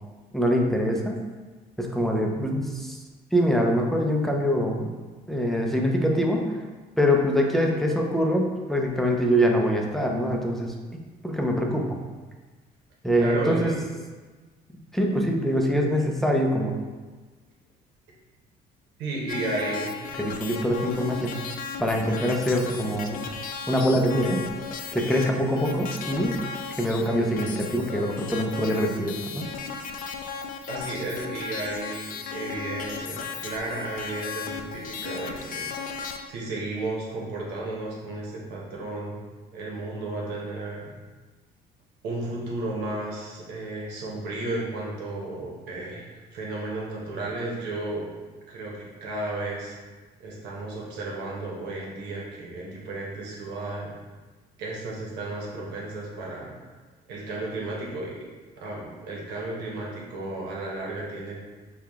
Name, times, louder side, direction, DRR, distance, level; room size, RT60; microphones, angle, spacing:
voice 1, 0.3-1.2 1.8-3.0 3.3-4.9 5.3-6.5 7.0-12.0 13.0-13.8 14.9-16.8 20.2-21.4 21.8-23.2 23.7-24.5 24.9-26.4 26.8-29.4, equal, ahead, 1 dB, 0.5 m, -24 dB
voice 2, 13.2-13.9 19.0-19.9 30.7-35.7 36.3-39.2 39.5-40.9 42.0-46.1 46.3-48.1 48.5-49.8 50.2-53.9 54.6-56.5 57.1-58.2 58.6-61.4, right 2 dB, 85° right, -3 dB, 1.1 m, -33 dB
sound 1, 19.3-36.2, left 6 dB, 55° left, 0.4 m, -36 dB
4.7 x 2.3 x 3.5 m, 1.3 s
cardioid pair, 110°, 17 cm